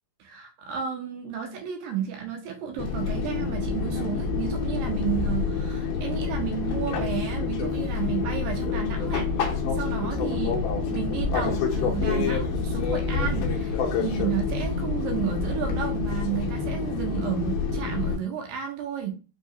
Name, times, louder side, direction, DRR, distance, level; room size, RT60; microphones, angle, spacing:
voice 1, 0.2-10.6 10.9-19.1, right 8 dB, 80° right, 3 dB, 2.2 m, -32 dB
Fixed-wing aircraft airplane, 2.8-18.2, left 4 dB, 75° left, 2.0 m, -27 dB
5.4 x 2.7 x 2.7 m, 0.33 s
omnidirectional pair, 4.2 m